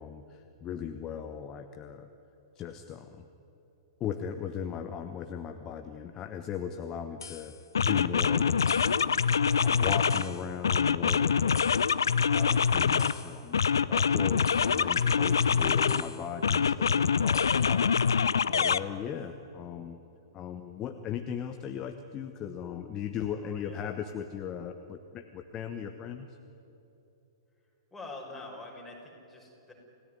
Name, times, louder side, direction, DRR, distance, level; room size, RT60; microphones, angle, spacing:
voice 1, 0.0-2.1 2.5-3.3 4.0-18.1 18.5-20.0 20.3-26.4, left 8 dB, 25° left, 7 dB, 1.2 m, -38 dB
sound 1, 7.2-7.4 7.7-10.3 10.6-13.2 13.5-16.1 16.4-18.8, left 6 dB, 65° left, 0.7 m, -25 dB
voice 2, 23.4-23.9 27.9-29.7, left 2 dB, 5° left, -2 dB, 6.0 m, -45 dB
29.0 x 17.5 x 9.6 m, 3.0 s
figure-of-eight pair, 105°, 2 cm